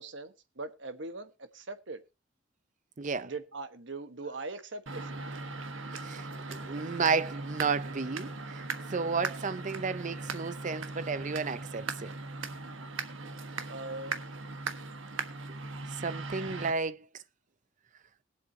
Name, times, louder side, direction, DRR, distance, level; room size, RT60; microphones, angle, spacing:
voice 1, 0.0-2.0 3.2-5.1 6.8-7.0 13.7-14.2, right 3 dB, 65° right, 1.2 m, -41 dB
voice 2, 3.0-3.3 6.0-6.2 6.5-8.3 8.9-12.1 16.0-17.0, right 4 dB, 40° right, 0.6 m, -32 dB
sound 1, 4.9-16.7, right 3 dB, 85° right, 1.3 m, -39 dB
20.5 x 7.8 x 2.8 m
head